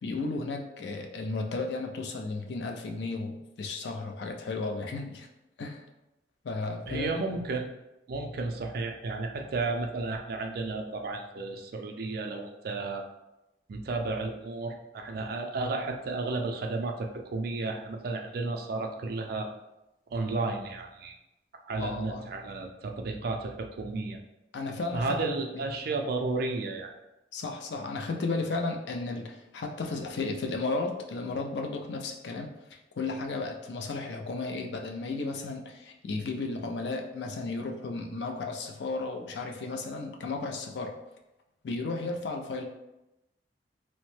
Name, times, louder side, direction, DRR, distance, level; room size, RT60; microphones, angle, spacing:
voice 1, 0.0-5.3 5.6-5.8 6.4-7.1 21.8-22.2 24.5-25.1 25.5-25.7 27.3-32.5 33.0-41.0 41.6-42.6, left 3 dB, 70° left, 3 dB, 0.4 m, -34 dB
voice 2, 6.9-7.7 8.1-13.0 13.7-19.5 20.1-21.1 21.7-24.2 24.9-26.9, right 3 dB, 55° right, 3 dB, 0.4 m, -33 dB
3.0 x 2.1 x 3.1 m, 0.94 s
head